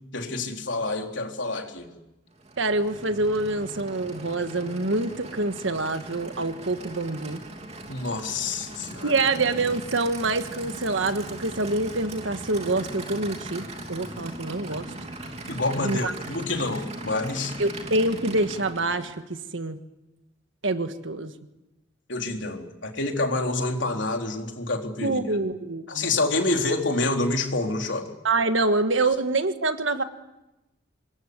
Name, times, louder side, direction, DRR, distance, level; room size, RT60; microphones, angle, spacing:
voice 1, 0.1-1.9 7.9-9.1 15.5-17.5 22.1-25.2 25.9-28.1, left 2 dB, 65° left, 3 dB, 3.9 m, -27 dB
Aircraft / Idling, 2.3-19.3, right 2 dB, 35° right, 3.1 m, -39 dB
voice 2, 2.6-7.4 9.0-14.9 15.8-16.1 17.6-19.8 20.6-21.3 25.0-26.2 28.2-30.0, right 2 dB, 75° right, 9 dB, 1.5 m, -26 dB
26.5 x 22.0 x 9.7 m, 1.0 s
head